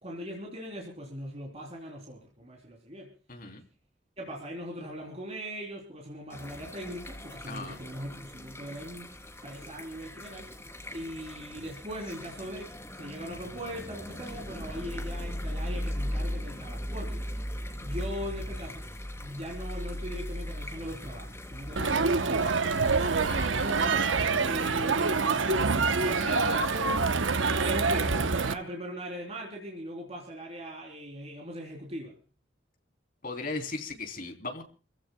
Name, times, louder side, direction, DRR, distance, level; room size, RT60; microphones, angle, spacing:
voice 1, 0.0-3.1 4.2-9.1 9.4-10.5 10.9-17.2 17.8-18.8 19.2-22.8 23.5-24.0 24.4-25.6 26.0-32.2, equal, 35° right, 0 dB, 3.7 m, -40 dB
voice 2, 3.3-3.6 7.5-7.8 21.8-22.0 23.3-23.6 33.2-34.6, left 3 dB, 50° left, 4 dB, 3.5 m, -37 dB
sound 1, 6.3-24.0, equal, 15° left, 3.4 m, -38 dB
Crowd, 21.8-28.5, right 4 dB, 85° right, 1.0 m, -26 dB
28.5 x 16.0 x 2.3 m, 0.37 s
head